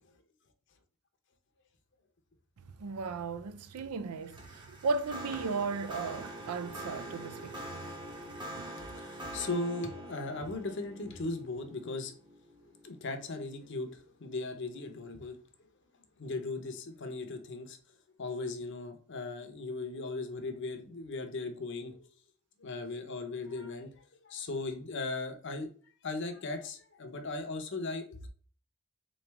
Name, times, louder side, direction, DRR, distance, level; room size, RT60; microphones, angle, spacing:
voice 1, 2.8-7.8, right 4 dB, 90° right, 0.5 m, -35 dB
sound 1, 4.2-13.5, right 1 dB, 20° right, 0.9 m, -45 dB
voice 2, 8.8-12.1 12.8-15.4 16.2-17.8 18.2-22.0 22.6-28.2, left 3 dB, 55° left, 0.7 m, -38 dB
3.7 x 3.2 x 3.3 m
head